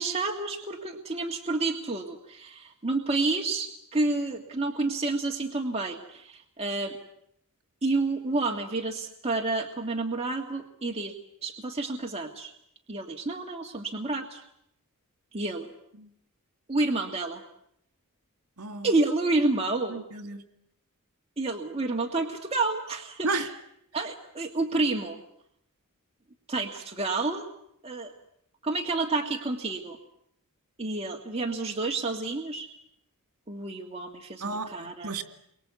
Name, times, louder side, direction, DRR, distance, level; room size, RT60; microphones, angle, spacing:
voice 1, 0.0-7.0 7.8-11.1 11.4-12.5 12.9-14.4 15.3-15.7 16.7-17.4 18.8-20.0 21.4-23.5 23.9-25.2 26.5-27.5 27.8-28.1 28.6-30.0 30.8-32.7 33.5-35.2, right 3 dB, 30° right, 1 dB, 1.8 m, -29 dB
voice 2, 18.6-18.9 19.9-20.4 23.2-23.5 34.4-35.2, right 3 dB, 75° right, 8 dB, 2.4 m, -32 dB
29.5 x 24.0 x 8.2 m, 0.75 s
head